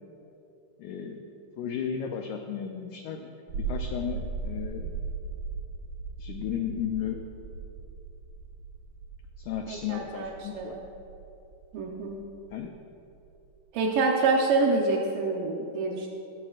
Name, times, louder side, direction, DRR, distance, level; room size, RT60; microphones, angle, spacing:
voice 1, 0.8-5.0 6.2-7.2 9.4-10.8 12.5-12.7, left 8 dB, 80° left, 4 dB, 1.7 m, -34 dB
sound 1, 3.5-13.6, right 4 dB, 60° right, 1.9 m, -38 dB
voice 2, 9.7-10.8 11.7-12.2 13.7-16.1, right 3 dB, 75° right, 0 dB, 2.5 m, -27 dB
18.0 x 14.0 x 2.5 m, 2.8 s
omnidirectional pair, 4.1 m